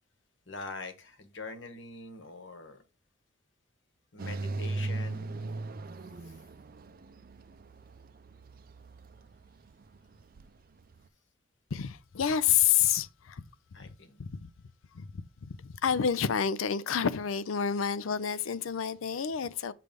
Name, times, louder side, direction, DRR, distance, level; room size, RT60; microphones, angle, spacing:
voice 1, 0.5-2.8 4.1-5.5 6.2-6.4 13.7-14.2, left 3 dB, 65° left, 1.2 m, -44 dB
sound 1, 4.2-11.1, right 2 dB, 45° right, 0.5 m, -39 dB
voice 2, 11.7-13.4 13.8-13.9 14.2-14.5 14.9-19.7, left 8 dB, 90° left, 0.5 m, -29 dB
7.6 x 3.3 x 5.1 m
head